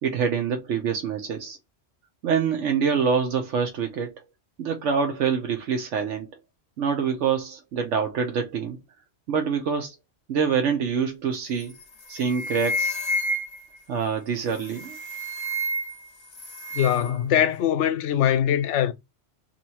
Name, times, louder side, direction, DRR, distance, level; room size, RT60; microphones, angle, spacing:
voice 1, 0.0-1.6 2.2-4.1 4.6-6.3 6.8-8.8 9.3-9.9 10.3-11.7 12.1-13.0 13.9-15.0, right 6 dB, 85° right, 1.1 m, -25 dB
sound 1, 11.6-11.8 12.1-13.8 14.6-16.1 16.3-17.1, equal, 40° left, 0.4 m, -30 dB
voice 2, 16.7-18.9, left 10 dB, 80° left, 0.9 m, -22 dB
2.9 x 2.7 x 4.2 m
omnidirectional pair, 1.2 m